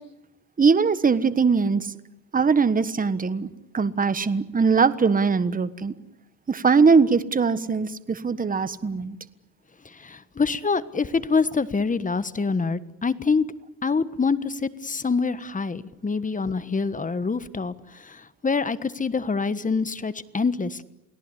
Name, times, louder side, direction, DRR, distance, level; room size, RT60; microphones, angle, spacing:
voice 1, 0.6-1.9 2.3-3.5 3.7-5.9 6.5-9.2, right 5 dB, 20° right, 14 dB, 1.4 m, -21 dB
voice 2, 9.8-13.4 13.8-20.8, left 4 dB, 20° left, 14 dB, 1.4 m, -26 dB
29.0 x 18.5 x 9.9 m, 0.87 s
cardioid pair, 110°, 41 cm